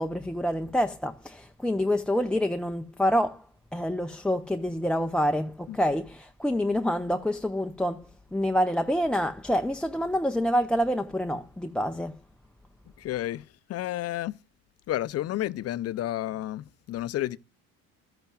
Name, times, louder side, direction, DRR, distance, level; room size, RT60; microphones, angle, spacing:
voice 1, 0.0-12.2, equal, 5° left, 0.5 m, -27 dB
voice 2, 13.0-14.4 14.9-17.4, left 14 dB, 55° left, 0.6 m, -31 dB
15.0 x 12.5 x 2.3 m
supercardioid pair, 90°, 30 cm